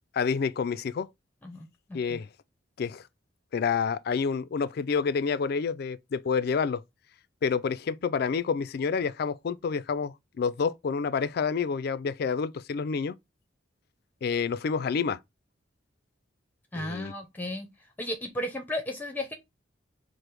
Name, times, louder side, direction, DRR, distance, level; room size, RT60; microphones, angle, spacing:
voice 1, 0.1-1.1 1.9-2.3 2.8-3.0 3.5-6.8 7.4-13.2 14.2-15.2 16.7-17.1, left 5 dB, 55° left, 0.3 m, -28 dB
voice 2, 1.4-2.2 16.7-17.7 18.0-19.3, left 1 dB, 10° left, 0.6 m, -34 dB
5.0 x 2.0 x 4.4 m
head